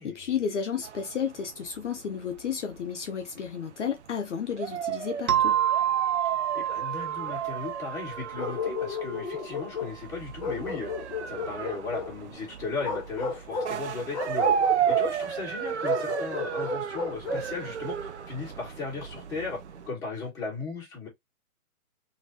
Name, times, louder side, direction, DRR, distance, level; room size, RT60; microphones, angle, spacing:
voice 1, 0.0-5.6, left 7 dB, 55° left, 0.6 m, -32 dB
sound 1, 0.8-19.9, right 9 dB, 50° right, 0.5 m, -33 dB
sound 2, 5.3-9.7, right 10 dB, 75° right, 0.9 m, -29 dB
voice 2, 6.2-19.6 19.9-21.1, left 4 dB, 5° left, 1.3 m, -37 dB
Bark, 8.4-10.0 10.4-12.1 12.8-13.8 14.1-15.1 15.8-17.5, left 5 dB, 30° left, 1.0 m, -33 dB
3.1 x 2.7 x 2.7 m
hypercardioid pair, 155°, 44 cm